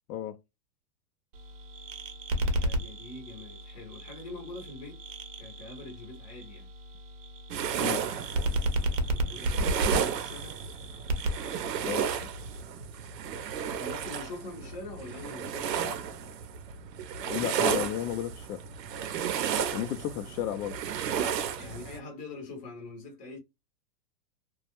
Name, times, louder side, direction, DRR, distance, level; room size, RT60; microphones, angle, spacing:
sound 1, 1.3-12.6, right 1 dB, 50° right, 0.7 m, -33 dB
voice 1, 2.4-5.0 5.4-6.7 9.1-10.6 13.6-16.1 20.0-20.6 21.6-23.4, left 2 dB, 15° left, 0.6 m, -44 dB
sound 2, 7.5-22.0, right 8 dB, 90° right, 0.7 m, -33 dB
voice 2, 17.3-18.6 19.7-20.8, left 11 dB, 75° left, 0.5 m, -33 dB
2.2 x 2.0 x 2.8 m
supercardioid pair, 150°, 48 cm